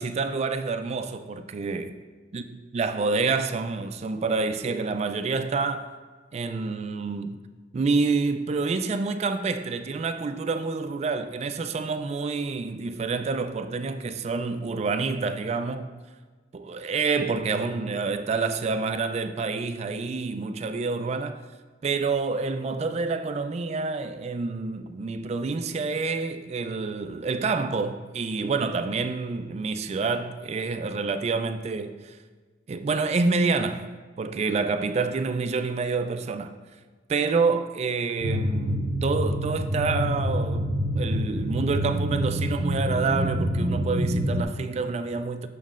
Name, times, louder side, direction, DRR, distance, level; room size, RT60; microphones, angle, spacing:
voice 1, 0.0-1.9 2.3-5.9 6.3-7.4 7.7-15.9 16.5-21.4 21.8-32.1 32.7-33.9 34.2-36.5 37.1-45.5, right 4 dB, 35° right, 0.3 m, -28 dB
sound 1, 38.2-44.4, equal, 70° right, 0.6 m, -27 dB
7.2 x 6.3 x 2.5 m
head